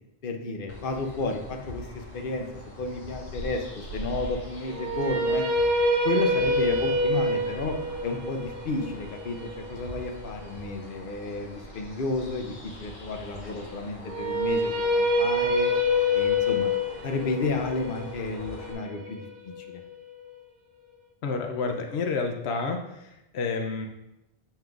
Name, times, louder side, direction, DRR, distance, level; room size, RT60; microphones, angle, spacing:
voice 1, 0.2-5.4 6.0-7.8 8.0-15.7 16.1-16.7 17.0-19.3 19.7-19.8, left 3 dB, 60° left, 4 dB, 0.9 m, -32 dB
sound 1, 0.7-18.7, equal, 35° left, 1.0 m, -43 dB
sound 2, 4.7-10.8 14.0-20.1, left 1 dB, 75° right, 1.2 m, -26 dB
voice 2, 21.2-23.9, left 4 dB, 85° left, 4 dB, 0.9 m, -30 dB
7.3 x 5.7 x 2.4 m, 0.89 s
omnidirectional pair, 1.1 m